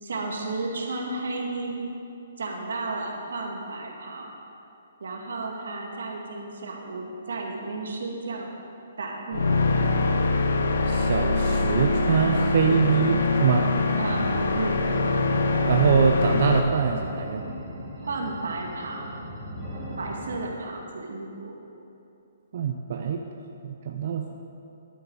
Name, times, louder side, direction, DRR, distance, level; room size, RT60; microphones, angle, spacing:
voice 1, 0.0-1.8 2.4-4.3 5.0-8.5 9.0-9.9 14.0-14.3 14.5-14.8 18.0-19.1 20.0-21.6, right 3 dB, 75° right, 0 dB, 2.0 m, -33 dB
sound 1, 9.3-16.6, left 3 dB, 70° left, 0.8 m, -23 dB
voice 2, 10.9-13.7 15.7-17.4 22.5-23.2 23.6-24.3, right 6 dB, 35° right, 3 dB, 0.5 m, -24 dB
sound 2, 13.9-20.3, equal, ahead, 2.2 m, -39 dB
11.5 x 9.4 x 4.7 m, 2.8 s
hypercardioid pair, 180°, 0 cm